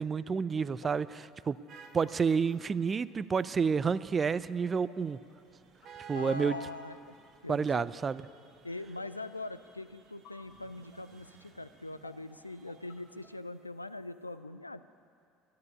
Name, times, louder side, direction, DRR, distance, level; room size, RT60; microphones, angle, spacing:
voice 1, 0.0-1.6 1.9-5.2 6.1-6.6 7.5-8.2, right 5 dB, 30° right, 17 dB, 0.4 m, -29 dB
sound 1, 0.7-14.4, left 4 dB, 55° left, 1.8 m, -60 dB
sound 2, 1.7-13.4, right 5 dB, 45° right, 1.3 m, -56 dB
voice 2, 6.1-7.0 7.4-7.9 8.6-14.8, left 2 dB, 90° left, 13 dB, 0.3 m, -42 dB
12.0 x 9.5 x 9.6 m, 2.4 s
figure-of-eight pair, 65°, 0 cm